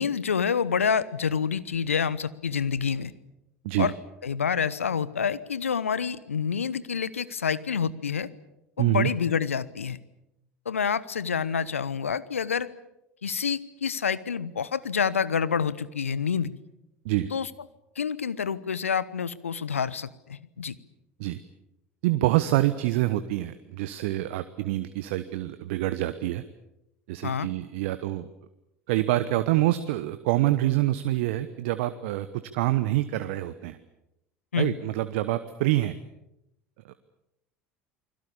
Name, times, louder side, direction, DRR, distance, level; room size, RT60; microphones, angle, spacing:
voice 1, 0.0-3.1 3.8-3.9 4.2-8.3 8.8-10.0 10.6-12.7 13.2-16.5 17.3-17.5 18.0-20.7 27.2-27.5 34.5-34.7, left 6 dB, 85° left, 18 dB, 0.9 m, -27 dB
voice 2, 8.8-9.1 17.0-17.3 21.2-21.4 22.0-26.4 27.1-28.3 28.9-32.3 32.5-33.8 34.6-36.0 36.8-36.9, right 16 dB, 65° right, 12 dB, 1.1 m, -26 dB
29.0 x 21.5 x 7.0 m, 0.87 s
figure-of-eight pair, 70°, 7 cm